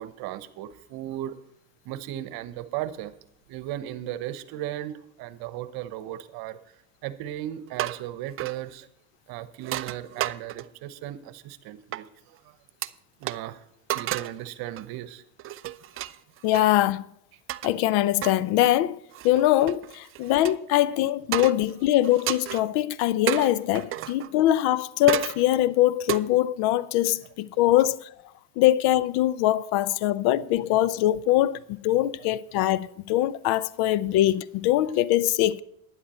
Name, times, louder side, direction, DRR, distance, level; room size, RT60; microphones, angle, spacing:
voice 1, 0.0-1.4 1.8-3.1 3.5-6.6 7.0-8.9 9.3-12.5 13.2-13.6 13.9-15.2 24.0-24.1, right 13 dB, 60° right, 1.0 m, -36 dB
sound 1, 7.7-8.1 8.4-8.6 9.6-10.8 11.9-12.0 12.8-12.9 13.2-13.4 13.9-14.4 14.8-15.0 15.4-16.7 17.5-17.7 18.2-18.4 19.1-20.5 21.3-21.7 22.0-22.6 23.3-24.3 25.1-25.4 26.1-26.2, right 13 dB, 35° right, 0.4 m, -31 dB
voice 2, 16.4-17.1 17.6-19.0 19.2-28.1 28.6-35.6, left 14 dB, 65° left, 0.6 m, -23 dB
11.5 x 9.8 x 4.3 m
supercardioid pair, 95°, 42 cm